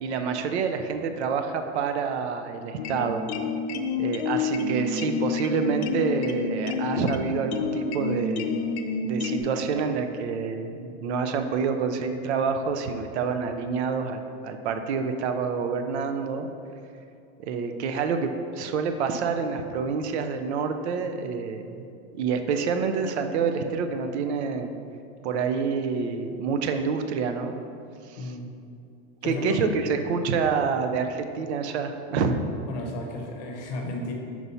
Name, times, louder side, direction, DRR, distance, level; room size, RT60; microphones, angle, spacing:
voice 1, 0.0-3.2 4.0-8.5 9.0-16.5 17.5-21.9 22.1-24.7 25.2-27.5 28.1-28.3 29.2-32.4, right 5 dB, 75° right, 7 dB, 0.6 m, -27 dB
sound 1, 2.8-9.4, left 4 dB, 75° left, 0.5 m, -29 dB
voice 2, 28.2-28.5 29.2-29.6 32.7-34.1, left 2 dB, 40° left, 1 dB, 0.7 m, -33 dB
4.6 x 4.1 x 5.5 m, 2.5 s
supercardioid pair, 180°, 34 cm